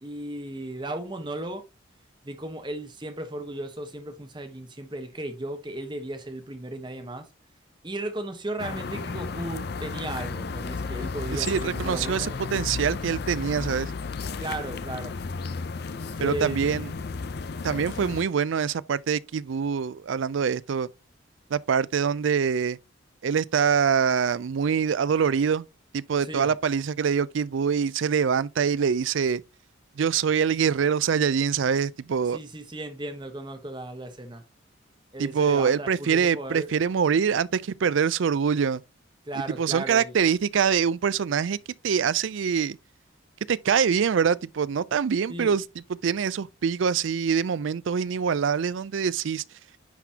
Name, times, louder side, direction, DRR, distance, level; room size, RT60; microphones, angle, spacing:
voice 1, 0.0-1.6 2.2-7.3 7.8-12.4 14.4-15.1 16.1-16.7 26.2-26.5 32.3-34.4 35.1-36.7 39.3-40.1 45.3-45.6, right 1 dB, 25° right, 1.1 m, -35 dB
sound 1, 8.6-18.2, left 4 dB, 50° left, 0.5 m, -33 dB
voice 2, 11.3-13.9 16.2-16.9 17.6-20.9 21.5-22.8 23.2-25.6 25.9-29.4 30.0-32.4 35.2-38.8 39.6-41.6 41.8-42.8 43.5-45.6 46.0-49.4, right 6 dB, 75° right, 0.4 m, -24 dB
10.0 x 4.0 x 2.8 m
head